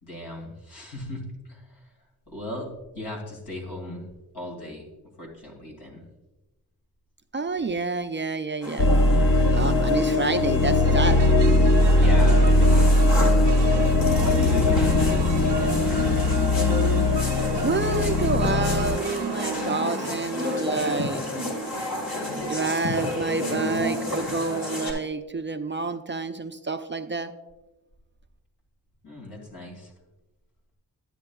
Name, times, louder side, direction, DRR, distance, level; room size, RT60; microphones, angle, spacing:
voice 1, 0.0-1.6 2.3-2.7 2.9-4.0 4.3-4.8 5.2-6.0 12.0-13.0 14.2-15.9 29.0-29.9, left 1 dB, 80° left, -1 dB, 2.5 m, -36 dB
voice 2, 7.3-8.9 9.5-11.2 17.6-21.2 22.4-27.3, right 3 dB, 30° right, 7 dB, 0.4 m, -28 dB
sound 1, 8.6-24.9, left 1 dB, 60° left, 1.8 m, -32 dB
sound 2, 8.8-19.0, left 2 dB, 35° left, 0.4 m, -20 dB
sound 3, 10.8-21.0, right 7 dB, 85° right, 0.6 m, -36 dB
11.0 x 8.7 x 2.3 m, 1.1 s
cardioid pair, 60°, 39 cm